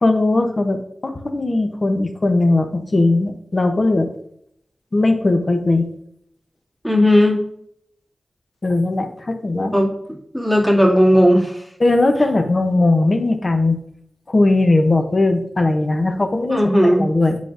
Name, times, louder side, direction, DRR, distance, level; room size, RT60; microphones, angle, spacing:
voice 1, 0.0-4.1 4.9-5.9 8.6-9.7 11.8-13.8 14.3-17.4, left 2 dB, 40° left, 6 dB, 0.8 m, -18 dB
voice 2, 6.8-7.4 9.7-9.9 10.3-11.6 16.5-17.1, equal, 10° left, -3 dB, 1.9 m, -15 dB
8.3 x 5.1 x 2.6 m, 0.72 s
wide cardioid pair, 65°, 0 cm